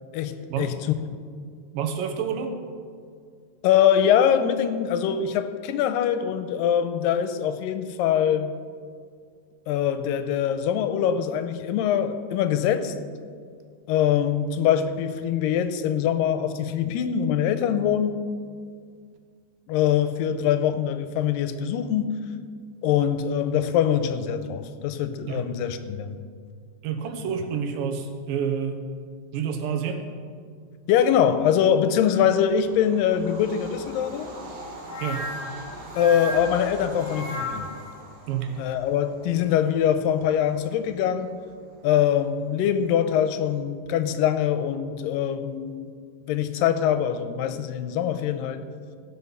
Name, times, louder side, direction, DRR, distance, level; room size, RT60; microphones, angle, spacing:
voice 1, 0.1-0.8 3.6-8.6 9.7-12.9 13.9-18.2 19.7-22.1 22.8-26.2 30.9-34.3 35.9-37.7 38.6-41.3 41.8-45.9 46.3-48.6, left 9 dB, 90° left, 10 dB, 2.3 m, -23 dB
voice 2, 1.7-2.5 25.3-25.4 26.8-28.8 29.3-30.1 35.0-35.3 38.3-38.6, right 7 dB, 85° right, 6 dB, 2.7 m, -28 dB
Bird vocalization bird call bird song / Train, 32.3-43.5, right 2 dB, 55° right, 1.1 m, -43 dB
sound 1, 34.9-38.0, left 1 dB, 60° left, 2.0 m, -35 dB
17.0 x 6.0 x 5.5 m, 2.1 s
omnidirectional pair, 4.0 m